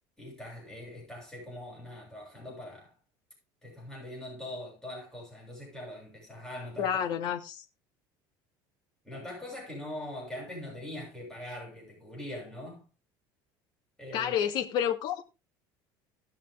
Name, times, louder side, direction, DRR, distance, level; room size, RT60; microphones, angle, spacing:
voice 1, 0.2-2.9 3.6-7.0 9.0-12.8 14.0-14.3, left 1 dB, 5° left, 7.1 m, -42 dB
voice 2, 6.8-7.6 14.1-15.2, left 9 dB, 55° left, 2.5 m, -29 dB
18.5 x 6.5 x 3.7 m
cardioid pair, 150°, 9 cm